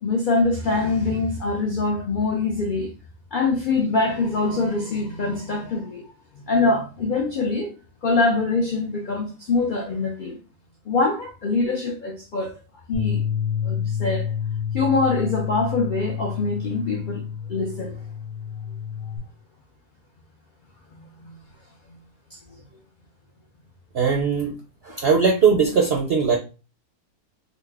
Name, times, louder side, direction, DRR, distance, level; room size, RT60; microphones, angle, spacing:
voice 1, 0.0-2.9 3.3-6.0 6.3-7.7 8.0-10.4 10.9-12.5 12.9-13.2 13.6-14.3 14.7-17.2 17.5-18.0 19.0-19.1 22.3-22.6, left 3 dB, 75° left, 0.4 m, -24 dB
Bass guitar, 12.9-19.2, left 8 dB, 40° left, 1.2 m, -29 dB
voice 2, 23.9-24.5 24.8-26.4, right 5 dB, 65° right, 0.6 m, -19 dB
3.9 x 2.1 x 3.4 m
omnidirectional pair, 1.6 m